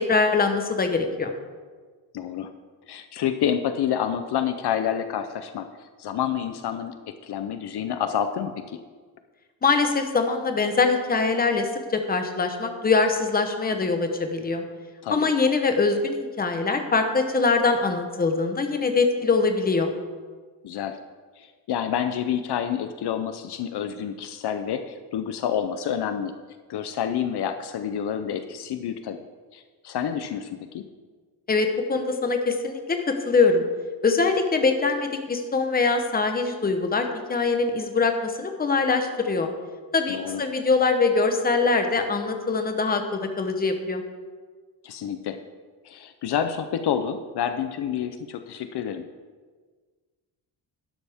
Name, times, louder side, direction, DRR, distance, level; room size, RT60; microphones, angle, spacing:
voice 1, 0.0-1.3 9.6-14.6 15.1-19.9 31.5-33.6 34.0-39.5 39.9-44.0, left 4 dB, 20° left, 5 dB, 0.9 m, -23 dB
voice 2, 2.1-2.5 2.9-6.9 7.2-8.8 15.0-15.3 20.6-21.0 21.4-26.3 26.7-29.2 29.5-30.8 40.1-40.4 44.8-45.4 45.8-49.0, left 9 dB, 65° left, 9 dB, 0.6 m, -28 dB
11.5 x 11.5 x 3.5 m, 1.5 s
wide cardioid pair, 165°, 44 cm